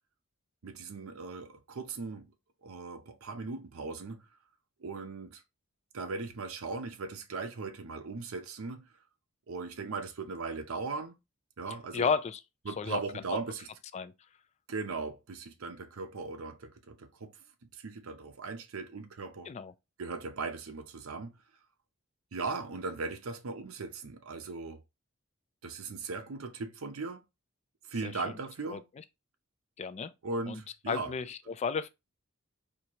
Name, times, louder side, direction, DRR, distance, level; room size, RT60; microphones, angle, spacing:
voice 1, 0.6-2.3 2.6-4.3 4.8-5.4 5.9-8.9 9.5-11.2 11.6-12.1 12.7-13.7 14.7-17.3 17.7-19.5 20.0-21.3 22.3-24.8 25.6-27.2 27.9-28.8 30.2-31.1, right 4 dB, 85° right, 0.6 m, -38 dB
voice 2, 11.9-12.4 12.8-13.2 13.9-14.1 19.5-19.7 28.0-28.2 28.7-28.8 29.8-30.1 30.5-30.6 30.9-31.9, left 5 dB, 30° left, 0.3 m, -33 dB
4.5 x 2.7 x 2.8 m
head